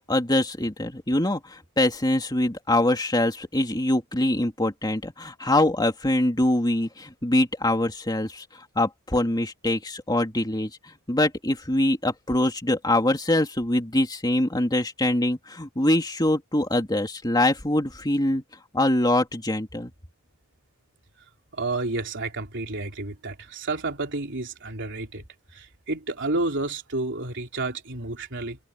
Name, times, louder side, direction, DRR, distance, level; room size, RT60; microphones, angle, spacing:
voice 1, 0.1-8.4 8.8-10.7 11.1-18.4 18.7-19.9, left 1 dB, 20° left, 2.7 m, -24 dB
voice 2, 21.5-25.2 25.5-28.6, right 2 dB, 55° right, 3.7 m, -30 dB
open air
head